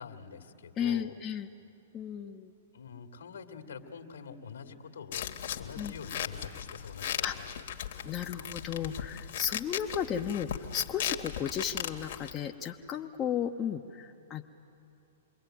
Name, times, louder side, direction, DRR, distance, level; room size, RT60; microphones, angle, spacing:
voice 1, 0.0-1.2 2.7-7.6, left 6 dB, 75° left, 5 dB, 2.3 m, -46 dB
voice 2, 0.8-1.5 1.9-2.5 5.8-5.9 7.2-7.3 8.0-14.4, left 8 dB, 25° left, 2 dB, 1.0 m, -34 dB
sound 1, 5.1-12.3, left 10 dB, 60° left, 1.8 m, -38 dB
27.0 x 22.5 x 9.3 m, 2.7 s
figure-of-eight pair, 110°, 0 cm